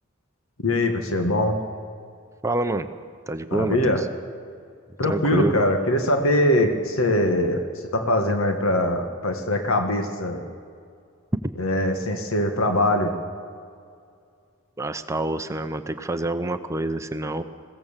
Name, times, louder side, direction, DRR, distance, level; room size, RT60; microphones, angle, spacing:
voice 1, 0.6-1.6 3.5-4.0 5.0-7.6 7.9-10.4 11.6-13.1, left 1 dB, 75° left, 5 dB, 1.7 m, -22 dB
voice 2, 2.4-2.9 3.3-4.1 5.0-5.5 14.8-17.4, right 2 dB, 15° right, 8 dB, 0.6 m, -27 dB
21.0 x 17.0 x 7.4 m, 2.3 s
head